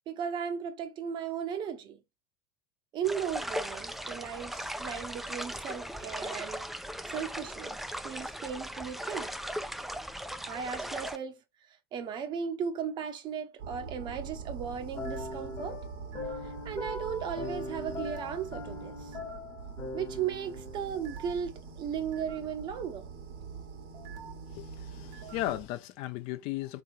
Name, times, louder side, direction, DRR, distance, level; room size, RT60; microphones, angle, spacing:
voice 1, 0.1-2.0 2.9-6.7 7.1-9.4 10.5-11.4 11.7-15.9 16.4-19.2 19.9-23.1, right 7 dB, 40° right, 0.8 m, -36 dB
sound 1, 3.0-11.2, equal, ahead, 0.3 m, -38 dB
sound 2, 13.6-25.7, right 6 dB, 65° right, 1.1 m, -43 dB
sound 3, 15.0-21.3, left 3 dB, 30° left, 1.0 m, -41 dB
voice 2, 24.6-26.8, left 15 dB, 55° left, 0.5 m, -36 dB
3.6 x 3.0 x 2.6 m
supercardioid pair, 115°, 12 cm